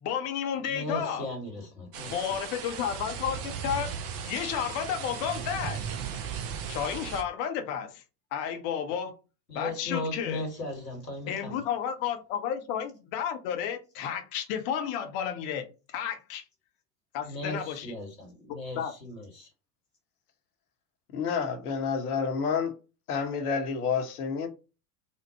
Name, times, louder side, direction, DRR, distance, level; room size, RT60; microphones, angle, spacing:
voice 1, 0.0-1.3 2.1-3.9 4.2-5.8 6.7-8.0 8.3-9.1 9.5-10.4 11.3-16.4 17.1-17.9 18.8-18.9, left 8 dB, 40° left, 0.7 m, -32 dB
voice 2, 0.5-2.1 9.5-11.6 17.3-19.5, left 1 dB, 80° left, 1.6 m, -37 dB
sound 1, 1.9-7.2, right 7 dB, 30° right, 0.5 m, -36 dB
voice 3, 21.1-22.7 23.1-24.5, left 6 dB, 65° left, 1.0 m, -29 dB
4.3 x 2.1 x 2.7 m
figure-of-eight pair, 80°, 49 cm